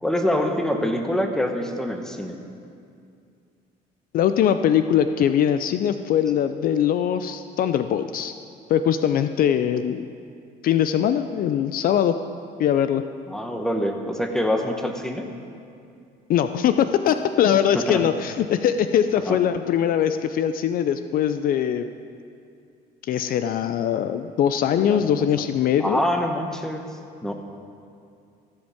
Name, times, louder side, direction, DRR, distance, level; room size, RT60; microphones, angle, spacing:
voice 1, 0.0-2.4 13.3-15.3 17.7-18.0 19.2-19.4 24.7-25.1 25.4-25.5 25.8-26.9 27.2-27.3, equal, 5° left, 4 dB, 1.0 m, -25 dB
voice 2, 4.1-8.3 8.7-10.1 10.6-12.2 12.6-13.0 16.3-21.9 23.1-26.0, left 9 dB, 60° left, 10 dB, 0.4 m, -21 dB
15.0 x 5.3 x 7.1 m, 2.4 s
cardioid pair, 110°, 17 cm